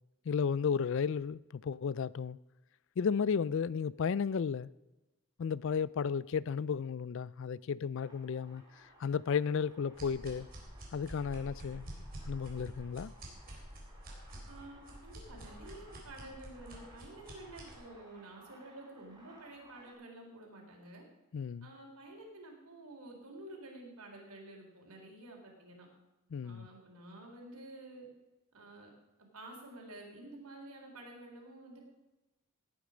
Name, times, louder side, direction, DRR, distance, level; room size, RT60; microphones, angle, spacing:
voice 1, 0.3-2.4 3.0-4.7 5.4-10.5 10.9-11.9 12.3-13.1 21.3-21.7 26.3-26.7, left 6 dB, 55° left, 0.3 m, -33 dB
sound 1, 7.9-19.9, right 1 dB, 20° right, 3.7 m, -60 dB
sound 2, 9.9-17.8, right 1 dB, 40° right, 3.7 m, -48 dB
voice 2, 14.5-21.0 21.6-25.9 26.4-28.1 28.5-28.9 29.3-31.8, right 1 dB, 90° right, 4.0 m, -50 dB
17.5 x 8.6 x 5.0 m
head